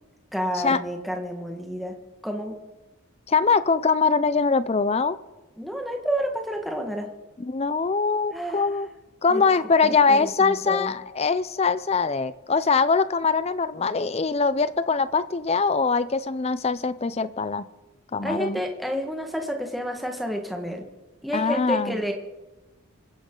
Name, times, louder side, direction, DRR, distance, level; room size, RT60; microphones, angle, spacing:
voice 1, 0.3-1.9 2.2-2.6 5.6-7.1 8.3-8.7 9.3-9.4 9.8-10.9 18.2-20.8 21.2-22.1, equal, ahead, 2 dB, 1.5 m, -30 dB
voice 2, 3.3-5.2 7.4-8.9 9.2-17.6 18.1-18.6 21.3-22.0, left 4 dB, 30° left, 16 dB, 0.4 m, -22 dB
26.0 x 10.5 x 3.8 m, 1.1 s
head